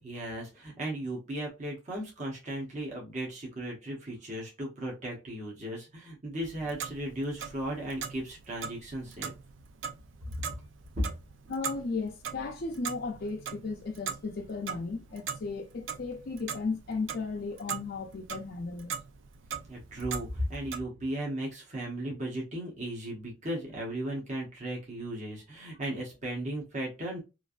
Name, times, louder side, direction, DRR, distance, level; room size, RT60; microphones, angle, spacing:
voice 1, 0.0-9.3 10.3-10.4 11.0-11.1 19.7-27.2, right 1 dB, 40° right, 0.9 m, -36 dB
Clock, 6.4-20.8, right 7 dB, 80° right, 0.5 m, -41 dB
voice 2, 11.5-18.9, left 4 dB, 55° left, 0.5 m, -35 dB
3.1 x 2.5 x 2.4 m
head